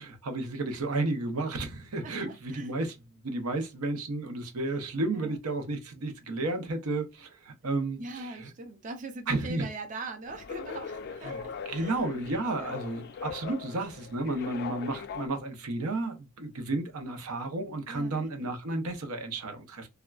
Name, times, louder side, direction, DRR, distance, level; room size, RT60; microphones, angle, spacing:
voice 1, 0.0-3.0 3.2-8.5 9.3-9.7 11.2-19.9, right 2 dB, 90° right, 0.7 m, -32 dB
voice 2, 2.0-2.7 4.7-4.8 5.1-5.3 8.0-11.9 12.6-12.8 14.3-14.6 17.9-18.5, right 2 dB, 35° right, 0.4 m, -42 dB
sound 1, 10.3-15.3, left 6 dB, 50° left, 0.3 m, -40 dB
3.5 x 2.2 x 2.3 m
head